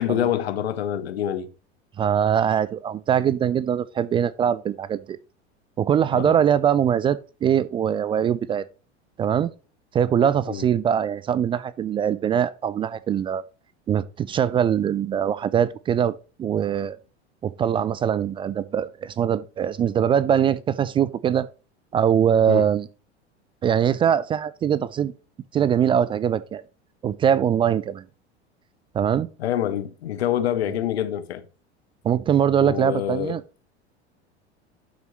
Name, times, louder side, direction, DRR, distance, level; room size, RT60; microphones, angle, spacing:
voice 1, 0.0-1.5 6.1-6.4 10.5-10.7 22.5-22.7 29.4-31.4 32.6-33.4, left 11 dB, 65° left, 1.1 m, -26 dB
voice 2, 2.0-5.2 5.8-8.6 9.2-9.5 9.9-13.4 13.9-17.0 17.4-21.5 21.9-22.9 23.6-25.1 25.5-26.6 27.0-28.0 28.9-29.3 32.0-33.4, right 8 dB, 15° right, 0.3 m, -22 dB
12.0 x 6.3 x 3.0 m
figure-of-eight pair, 80°, 34 cm